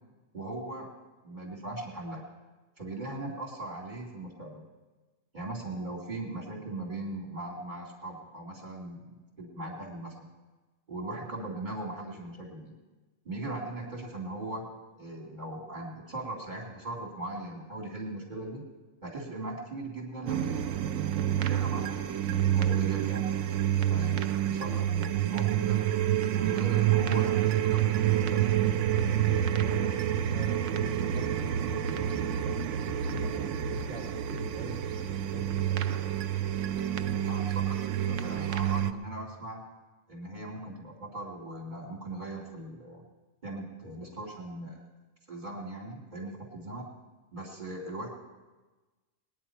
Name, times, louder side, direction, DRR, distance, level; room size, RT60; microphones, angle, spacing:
voice 1, 0.3-0.9 1.2-2.3 2.8-4.6 5.3-10.3 10.9-12.7 13.2-18.6 19.0-20.7 21.3-23.3 23.9-25.8 26.3-28.5 37.3-39.7 40.1-43.0 43.4-44.8 45.3-46.9 47.3-48.1, right 2 dB, 40° right, -3 dB, 2.5 m, -39 dB
sound 1, 20.3-38.9, right 10 dB, 80° right, 0.9 m, -28 dB
voice 2, 29.6-30.0 30.3-36.2 43.8-44.1, right 1 dB, 55° left, -5 dB, 3.5 m, -45 dB
20.5 x 9.8 x 4.4 m, 1.2 s
omnidirectional pair, 1.3 m